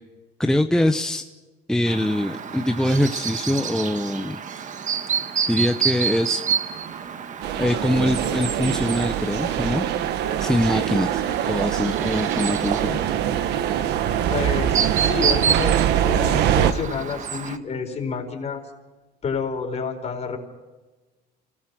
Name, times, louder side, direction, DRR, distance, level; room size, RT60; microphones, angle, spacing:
voice 1, 0.4-1.3 1.7-4.4 5.5-6.4 7.6-9.9 10.4-13.0, left 1 dB, 5° left, 6 dB, 0.9 m, -23 dB
Chirp tweet, 1.9-17.6, right 7 dB, 45° right, 1.4 m, -29 dB
sound 1, 7.4-16.7, right 10 dB, 80° right, 1.3 m, -23 dB
voice 2, 14.3-18.6 19.2-20.4, left 5 dB, 40° left, 3 dB, 4.6 m, -29 dB
28.5 x 19.0 x 6.2 m, 1.2 s
cardioid pair, 110°, 17 cm